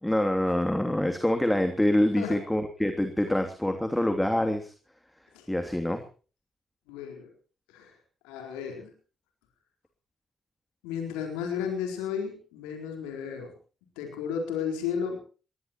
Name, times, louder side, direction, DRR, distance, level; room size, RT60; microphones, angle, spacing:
voice 1, 0.0-4.7 5.5-6.0, left 1 dB, 10° left, 6 dB, 2.9 m, -26 dB
voice 2, 6.9-7.3 7.7-7.9 8.2-8.9 10.8-13.5 14.0-15.2, left 7 dB, 85° left, 3 dB, 4.3 m, -33 dB
21.5 x 19.0 x 3.0 m, 0.37 s
hypercardioid pair, 40°, 0 cm